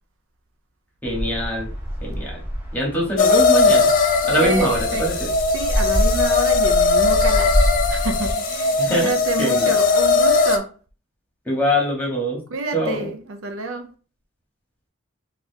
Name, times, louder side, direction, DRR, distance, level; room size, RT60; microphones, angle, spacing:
voice 1, 1.0-1.7 2.0-2.4 2.7-3.9 4.3-5.3 8.8-9.1 9.4-9.7 11.5-12.4 12.7-13.1, equal, 10° left, 1.1 m, -23 dB
sound 1, 1.0-8.3, equal, 10° right, 0.7 m, -26 dB
sound 2, 3.2-10.6, left 4 dB, 40° left, 0.4 m, -19 dB
voice 2, 4.4-5.1 5.5-7.6 7.9-10.7 12.5-13.9, right 3 dB, 70° right, 0.5 m, -28 dB
3.9 x 2.4 x 2.7 m
head